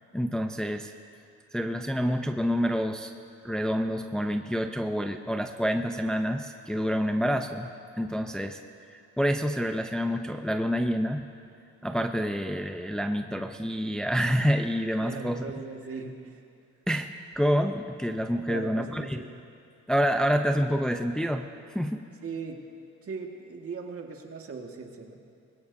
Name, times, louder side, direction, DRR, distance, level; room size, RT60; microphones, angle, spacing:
voice 1, 0.1-0.9 1.5-3.1 3.4-8.6 8.9-11.2 11.8-15.5 16.9-19.2 19.9-22.1, equal, ahead, 6 dB, 0.6 m, -28 dB
voice 2, 15.0-16.4 18.5-19.3 22.2-22.6 23.0-25.2, right 4 dB, 50° right, 2 dB, 1.8 m, -39 dB
21.0 x 17.0 x 2.7 m, 2.5 s
cardioid pair, 90°, 30 cm